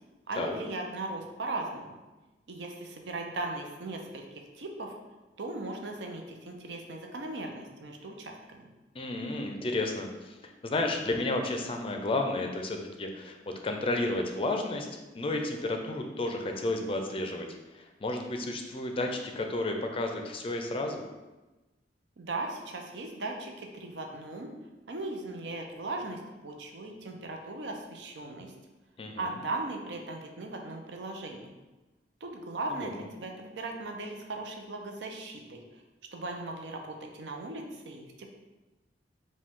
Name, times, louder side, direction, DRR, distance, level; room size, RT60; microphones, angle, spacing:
voice 1, 0.3-2.0 2.5-4.2 4.5-4.9 5.4-8.7 22.2-24.5 24.9-28.5 29.2-31.5 32.2-35.8 36.1-38.3, right 2 dB, 80° right, 2 dB, 0.6 m, -38 dB
voice 2, 9.0-10.3 10.6-14.9 15.1-17.5 17.7-21.0 29.0-29.2 32.8-33.1, left 2 dB, 30° left, 3 dB, 0.4 m, -32 dB
5.1 x 2.3 x 3.6 m, 1.1 s
head